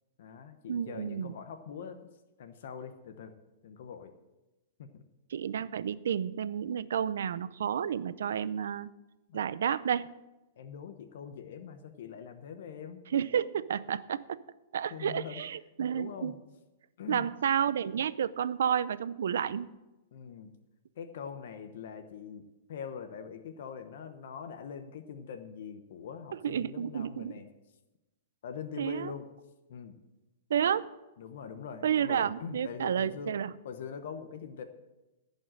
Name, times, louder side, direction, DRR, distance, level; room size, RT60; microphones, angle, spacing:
voice 1, 0.2-2.1 2.4-3.3 3.6-4.1 4.8-5.0 9.3-9.4 10.6-13.0 14.9-15.4 15.9-16.3 17.0-17.3 20.1-20.5 21.0-22.4 22.7-27.5 28.4-29.3 29.7-30.0 31.2-33.3 33.6-34.6, left 7 dB, 65° left, 8 dB, 1.0 m, -43 dB
voice 2, 0.7-1.3 5.3-8.9 9.3-10.1 13.1-14.4 14.7-16.4 17.1-19.7 26.4-27.3 28.8-29.1 30.5-30.9 31.8-33.5, right 8 dB, 80° right, 16 dB, 0.6 m, -31 dB
15.0 x 5.4 x 7.6 m, 1.0 s
hypercardioid pair, 155°, 0 cm